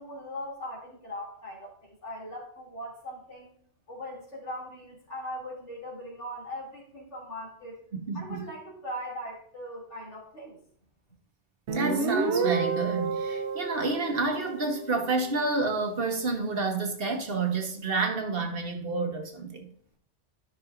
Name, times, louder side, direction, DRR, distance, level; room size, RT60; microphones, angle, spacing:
voice 1, 0.0-3.5 3.9-7.8 8.1-10.6, equal, 80° left, 2.8 m, -40 dB
voice 2, 7.9-8.4 11.7-19.7, right 3 dB, 55° right, 1.3 m, -29 dB
Guitar, 11.7-15.1, right 4 dB, 75° right, 1.1 m, -30 dB
11.5 x 5.9 x 2.5 m
omnidirectional pair, 1.2 m